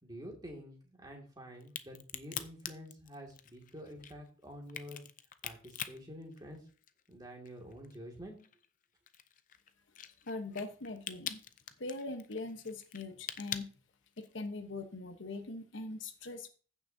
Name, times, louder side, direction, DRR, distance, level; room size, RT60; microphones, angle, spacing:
voice 1, 0.0-5.0 5.4-6.6 7.1-8.4, equal, 20° right, 0 dB, 2.1 m, -48 dB
Crack, 1.6-7.1 7.5-14.5, left 9 dB, 40° left, 0.5 m, -44 dB
voice 2, 10.2-11.4 11.8-13.7 14.2-16.5, left 2 dB, 65° left, 7 dB, 1.0 m, -41 dB
15.5 x 6.1 x 2.7 m, 0.40 s
head